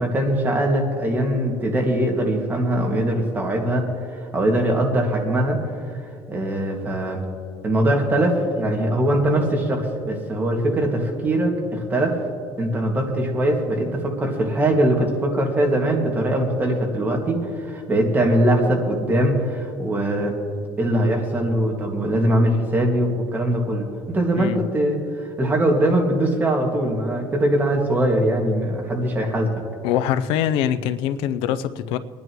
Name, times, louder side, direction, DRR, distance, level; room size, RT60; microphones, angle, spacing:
voice 1, 0.0-5.8 6.3-7.2 7.6-12.2 12.6-20.4 20.8-29.6, right 1 dB, 20° right, 2.1 m, -21 dB
voice 2, 29.8-32.0, left 10 dB, 85° left, 0.6 m, -23 dB
24.5 x 10.5 x 3.1 m
cardioid pair, 135°, 9 cm